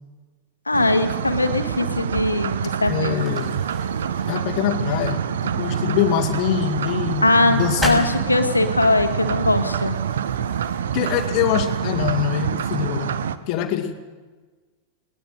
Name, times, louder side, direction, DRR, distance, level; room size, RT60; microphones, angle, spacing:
voice 1, 0.7-3.2 7.2-10.0, left 2 dB, 85° left, 7 dB, 1.9 m, -20 dB
sound 1, 0.7-12.6, left 1 dB, 10° right, 6.6 m, -39 dB
sound 2, 0.7-13.4, right 8 dB, 65° right, 0.9 m, -26 dB
voice 2, 2.9-3.6 4.3-8.0 10.9-13.1 13.5-13.9, left 10 dB, 45° left, 5 dB, 2.1 m, -24 dB
21.5 x 19.5 x 6.5 m, 1.3 s
figure-of-eight pair, 90°, 0 cm